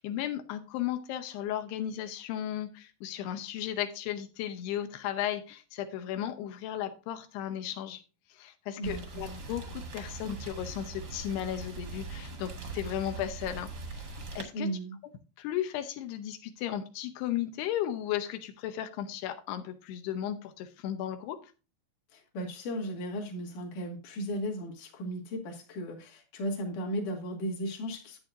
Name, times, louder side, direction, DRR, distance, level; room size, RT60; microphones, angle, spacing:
voice 1, 0.0-8.0 8.3-14.7 15.4-21.4, left 11 dB, 90° left, 7 dB, 2.9 m, -35 dB
Rain, 8.8-14.4, right 3 dB, 55° right, 1.1 m, -41 dB
voice 2, 14.5-15.0 22.1-28.2, equal, 55° left, 1 dB, 3.1 m, -35 dB
11.0 x 8.5 x 2.5 m, 0.33 s
omnidirectional pair, 4.6 m